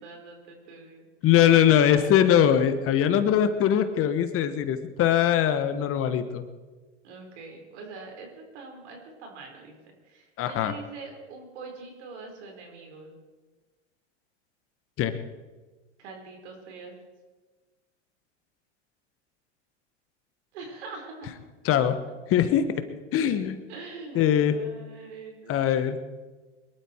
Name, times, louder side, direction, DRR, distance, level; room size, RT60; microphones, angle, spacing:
voice 1, 0.0-1.1 1.5-2.1 7.0-9.7 10.0-13.2 16.0-16.9 20.5-21.3 22.3-22.5 23.7-25.6, right 4 dB, 70° right, 2 dB, 4.7 m, -43 dB
voice 2, 1.2-6.4 10.4-10.7 15.0-15.1 21.6-22.0 22.3-22.8 23.1-23.6 24.1-24.6 25.5-26.0, left 10 dB, 40° left, 10 dB, 1.3 m, -21 dB
22.5 x 12.0 x 4.6 m, 1.3 s
hypercardioid pair, 105°, 35 cm